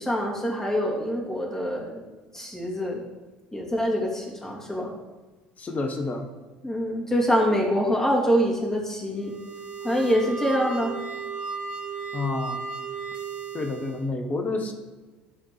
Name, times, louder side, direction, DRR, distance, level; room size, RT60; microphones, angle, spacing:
voice 1, 0.0-2.0 2.3-3.0 3.5-4.9 6.6-9.3 9.8-10.9, equal, 10° left, -2 dB, 2.5 m, -25 dB
voice 2, 5.6-6.3 12.1-12.7 13.5-14.7, left 3 dB, 30° left, 4 dB, 1.4 m, -29 dB
sound 1, 9.2-14.1, right 5 dB, 50° right, 3.0 m, -35 dB
12.5 x 4.3 x 5.0 m, 1.3 s
figure-of-eight pair, 65°, 5 cm